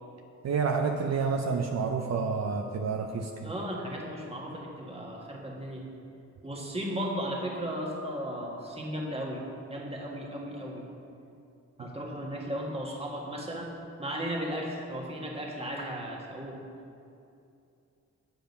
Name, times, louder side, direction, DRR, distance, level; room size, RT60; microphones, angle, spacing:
voice 1, 0.4-3.5 11.8-11.9, right 5 dB, 65° right, 2 dB, 0.6 m, -29 dB
voice 2, 3.4-5.9 6.4-9.4 9.7-10.9 11.8-16.6, equal, 20° right, -2 dB, 1.6 m, -35 dB
7.6 x 6.9 x 5.3 m, 2.6 s
wide cardioid pair, 90°, 29 cm